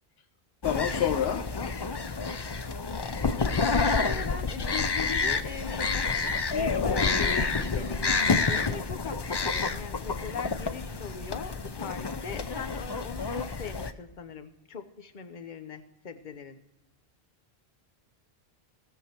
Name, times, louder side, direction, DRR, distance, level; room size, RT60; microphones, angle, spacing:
voice 1, 0.6-1.4, left 9 dB, 75° left, 10 dB, 0.9 m, -27 dB
sound 1, 0.6-13.9, left 4 dB, 35° left, 0.5 m, -29 dB
voice 2, 3.9-16.6, left 6 dB, 50° left, 9 dB, 1.0 m, -40 dB
17.5 x 7.1 x 4.4 m, 0.95 s
omnidirectional pair, 1.1 m